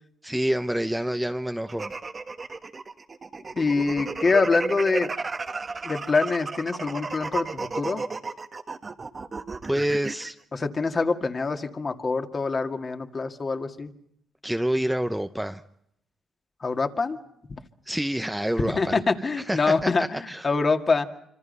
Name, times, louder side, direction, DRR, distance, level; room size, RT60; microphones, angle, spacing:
voice 1, 0.2-1.9 9.7-10.4 14.4-15.6 17.9-19.0 19.4-20.5, right 1 dB, 5° right, 0.8 m, -27 dB
sound 1, 1.7-10.3, right 4 dB, 30° right, 1.4 m, -33 dB
voice 2, 3.5-5.1 5.8-8.0 10.5-13.9 16.6-17.2 18.8-21.1, left 4 dB, 35° left, 2.1 m, -25 dB
26.0 x 25.5 x 5.5 m
cardioid pair, 90°, 0 cm